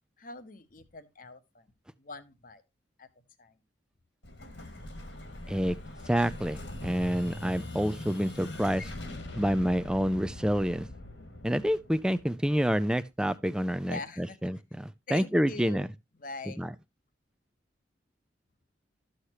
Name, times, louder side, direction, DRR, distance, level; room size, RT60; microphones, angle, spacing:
voice 1, 0.2-1.7 2.0-2.6 3.0-3.1 3.4-3.6 13.8-14.4 15.1-15.8 16.2-16.7, left 3 dB, 45° left, 1.0 m, -43 dB
Explosion, 4.2-12.9, left 1 dB, 70° left, 2.1 m, -42 dB
voice 2, 6.1-8.9 9.4-10.9 11.4-15.9 16.6-16.7, equal, 5° right, 0.4 m, -28 dB
13.0 x 6.5 x 2.9 m
head